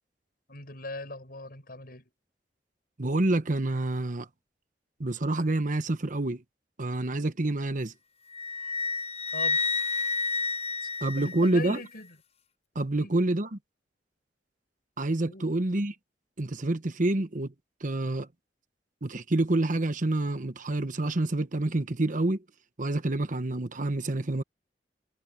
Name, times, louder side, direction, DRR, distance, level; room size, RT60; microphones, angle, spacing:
voice 1, 0.5-2.1 9.3-9.6 10.8-10.9 11.2-12.1 13.0-13.1 15.3-15.5, left 2 dB, 55° left, 6.3 m, -40 dB
voice 2, 3.0-4.3 5.0-6.4 6.8-7.9 11.0-11.8 12.7-13.6 15.0-15.9 16.4-17.5 17.8-18.3 19.0-22.4 22.8-24.4, right 2 dB, 50° right, 1.1 m, -27 dB
Wind instrument woodwind instrument, 8.3-11.8, left 3 dB, 35° left, 0.8 m, -30 dB
head